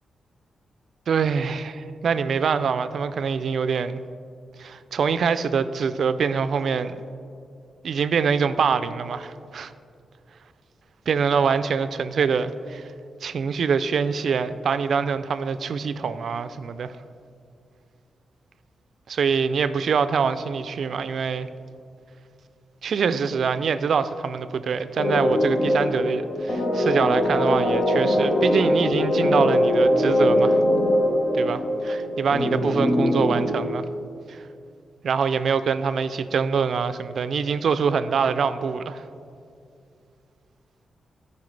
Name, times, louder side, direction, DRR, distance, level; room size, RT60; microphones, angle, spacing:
voice 1, 1.1-4.0 4.6-7.0 7.8-9.7 11.1-12.8 13.2-16.9 19.1-21.5 22.8-30.6 31.3-33.9 34.3-34.4 35.0-39.0, right 6 dB, 65° right, 12 dB, 0.3 m, -24 dB
sound 1, 25.0-33.5, left 1 dB, 65° left, 1.2 m, -22 dB
13.0 x 5.4 x 3.3 m, 2.5 s
wide cardioid pair, 120°, 0 cm